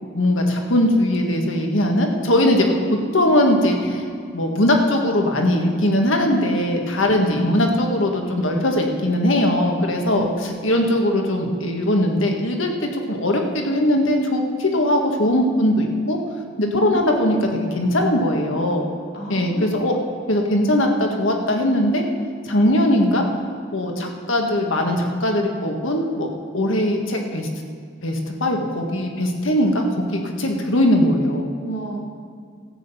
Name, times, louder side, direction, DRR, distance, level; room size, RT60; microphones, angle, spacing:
voice 1, 0.0-4.0 4.3-10.3 10.6-16.2 16.6-18.9 19.3-20.0 20.3-22.0 22.4-23.2 23.7-26.3 26.5-27.5 28.0-31.5, left 1 dB, 70° left, 2 dB, 1.8 m, -20 dB
voice 2, 2.6-3.4 7.1-7.6 10.1-10.6 16.6-17.6 19.1-19.9 31.6-32.0, right 2 dB, 50° left, -1 dB, 2.6 m, -30 dB
14.0 x 9.1 x 5.7 m, 2.2 s
head